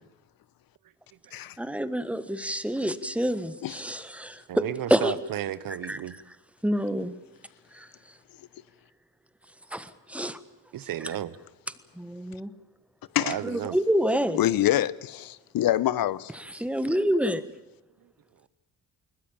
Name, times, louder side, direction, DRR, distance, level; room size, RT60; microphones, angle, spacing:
voice 1, 1.6-5.1 5.7-6.4 6.6-7.2 7.7-8.1 9.7-10.4 11.0-11.2 11.9-12.5 13.4-14.4 16.3-17.4, equal, 5° right, 1.4 m, -28 dB
voice 2, 4.5-6.1 10.7-11.3 13.2-13.7, right 11 dB, 80° right, 1.1 m, -33 dB
voice 3, 14.4-16.3, left 13 dB, 90° left, 1.0 m, -25 dB
21.5 x 20.5 x 8.8 m
cardioid pair, 130°, 34 cm